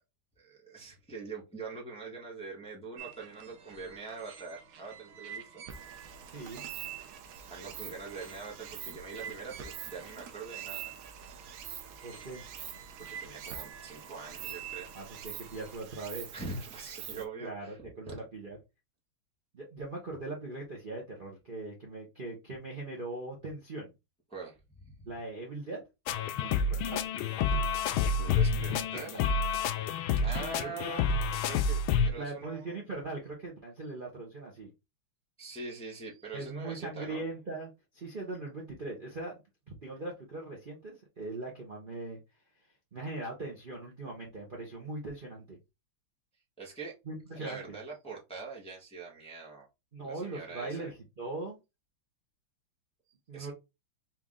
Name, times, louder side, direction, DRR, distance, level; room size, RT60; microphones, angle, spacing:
voice 1, 0.4-5.6 7.5-10.9 13.0-14.9 16.3-17.8 18.1-18.2 24.3-25.1 28.2-29.3 30.2-31.0 31.4-32.8 35.4-37.3 46.6-46.9 47.3-49.7 50.0-50.9 53.3-53.5, right 4 dB, 5° left, -3 dB, 1.0 m, -43 dB
sound 1, 3.0-15.8, right 8 dB, 65° right, 0.9 m, -47 dB
Stream, 5.7-17.3, right 9 dB, 85° right, 1.5 m, -46 dB
voice 2, 6.3-6.7 12.0-12.4 14.9-16.3 17.4-18.6 19.5-23.9 25.1-25.8 26.4-27.0 28.5-29.2 30.6-30.9 32.2-34.7 36.3-39.4 39.7-42.2 42.9-45.6 47.0-47.8 49.9-51.6 53.3-53.5, right 2 dB, 35° right, -2 dB, 0.9 m, -40 dB
sound 2, 26.1-32.1, left 4 dB, 85° left, 1.4 m, -29 dB
4.6 x 2.7 x 3.6 m, 0.24 s
omnidirectional pair, 2.2 m